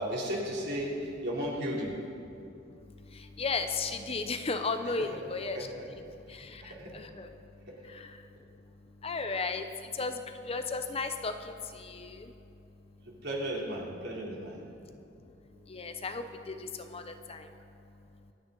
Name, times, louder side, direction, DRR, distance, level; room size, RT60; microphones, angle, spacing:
voice 1, 0.0-2.0 5.1-5.2 5.5-5.9 6.6-7.1 7.6-7.7 8.0-8.1 13.0-14.6 15.5-15.6, equal, 60° right, -3 dB, 3.1 m, -35 dB
voice 2, 2.4-5.7 6.3-13.2 14.7-18.3, left 4 dB, 30° left, 8 dB, 0.7 m, -37 dB
26.0 x 9.2 x 3.9 m, 2.6 s
head